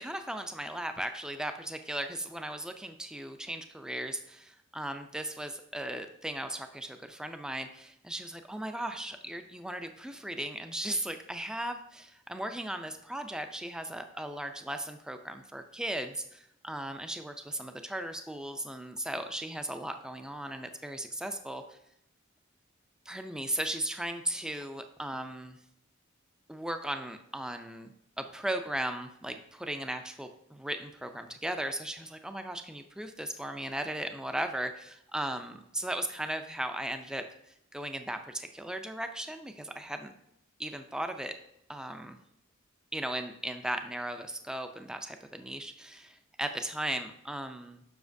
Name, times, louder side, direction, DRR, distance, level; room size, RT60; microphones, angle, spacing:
voice 1, 0.0-21.6 23.1-25.6 26.5-27.9 28.2-37.2 37.7-40.0 40.6-41.3 41.7-42.2 42.9-47.8, right 1 dB, 5° right, 7 dB, 0.3 m, -37 dB
7.1 x 5.8 x 2.6 m, 0.79 s
head